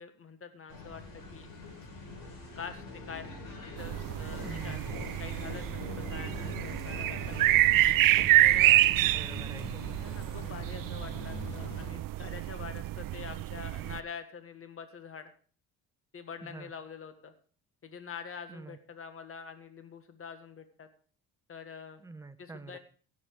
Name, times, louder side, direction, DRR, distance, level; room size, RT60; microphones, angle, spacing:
voice 1, 0.0-1.5 2.6-3.3 3.8-7.7 8.4-8.9 10.0-15.3 16.1-17.3 17.8-20.9 21.5-22.0 22.4-22.8, left 6 dB, 35° left, 8 dB, 1.8 m, -45 dB
sound 1, 0.7-11.9, left 2 dB, 60° left, 5.2 m, -43 dB
sound 2, 3.8-14.0, right 15 dB, 60° right, 0.6 m, -27 dB
voice 2, 4.4-4.9 8.9-9.8 16.5-16.7 18.5-18.8 22.0-22.8, right 3 dB, 10° right, 9 dB, 1.1 m, -46 dB
16.5 x 7.4 x 4.9 m, 0.42 s
cardioid pair, 95°, 37 cm